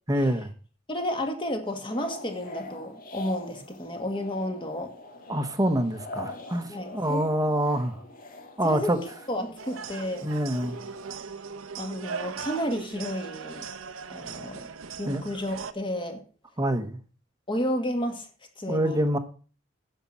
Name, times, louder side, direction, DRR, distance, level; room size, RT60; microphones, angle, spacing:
voice 1, 0.1-0.5 5.3-8.0 8.6-9.0 10.2-10.8 15.1-15.3 16.6-17.0 18.7-19.2, right 1 dB, 15° right, 1.0 m, -26 dB
voice 2, 0.9-4.9 6.7-7.3 8.6-9.0 9.3-10.3 11.8-13.6 14.1-14.7 15.0-16.2 17.5-18.3 18.6-19.0, equal, 25° left, 2.0 m, -31 dB
sound 1, 1.6-11.1, left 2 dB, 45° left, 1.7 m, -43 dB
sound 2, 9.6-15.7, right 5 dB, 70° right, 0.8 m, -39 dB
9.9 x 6.7 x 7.3 m
head